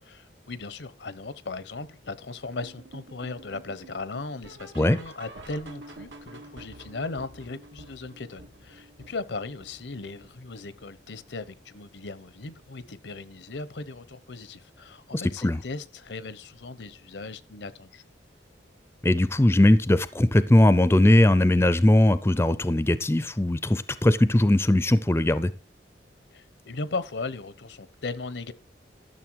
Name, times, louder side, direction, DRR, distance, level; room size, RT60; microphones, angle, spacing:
voice 1, 0.0-18.0 26.3-28.5, left 3 dB, 80° left, 0.9 m, -37 dB
sound 1, 2.6-11.7 12.0-12.3 12.6-12.7 13.2-13.3 13.9-14.0, right 1 dB, 90° right, 2.0 m, -49 dB
voice 2, 15.1-15.6 19.0-25.5, left 1 dB, 15° left, 0.5 m, -20 dB
12.5 x 6.8 x 4.6 m
head